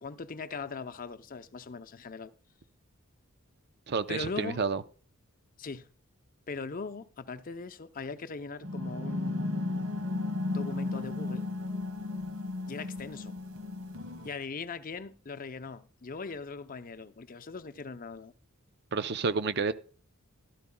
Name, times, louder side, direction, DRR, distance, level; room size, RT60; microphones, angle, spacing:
voice 1, 0.0-2.3 4.1-4.6 5.6-5.9 6.5-9.8 10.5-11.5 12.7-13.3 14.2-18.3, left 4 dB, 40° left, 0.6 m, -40 dB
voice 2, 3.9-4.8 18.9-19.7, right 4 dB, 50° right, 0.6 m, -30 dB
sound 1, 8.6-14.3, left 2 dB, 85° right, 1.8 m, -34 dB
13.0 x 12.5 x 2.2 m
head